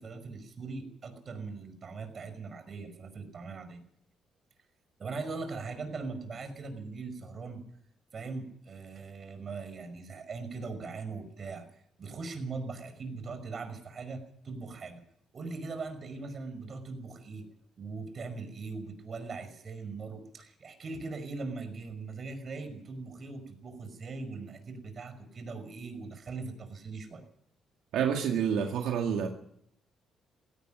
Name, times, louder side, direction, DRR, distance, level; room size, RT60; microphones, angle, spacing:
voice 1, 0.0-3.8 5.0-7.6 8.1-15.0 15.3-17.5 17.8-27.2, right 4 dB, 45° right, 9 dB, 5.6 m, -40 dB
voice 2, 27.9-29.3, right 7 dB, 85° right, 2 dB, 2.2 m, -28 dB
17.5 x 17.0 x 9.0 m, 0.69 s
cardioid pair, 90°, 0 cm